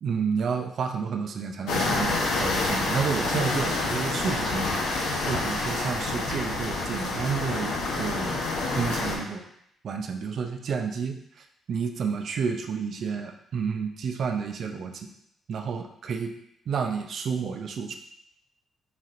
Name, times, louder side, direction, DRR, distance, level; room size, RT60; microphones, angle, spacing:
voice 1, 0.0-4.9 5.2-8.4 8.8-9.4 9.8-15.1 15.5-16.3 16.7-18.0, right 6 dB, 60° right, 5 dB, 0.5 m, -30 dB
sound 1, 1.7-9.2, left 2 dB, 85° left, 0.9 m, -28 dB
4.1 x 4.1 x 2.5 m, 0.74 s
cardioid pair, 90°, 0 cm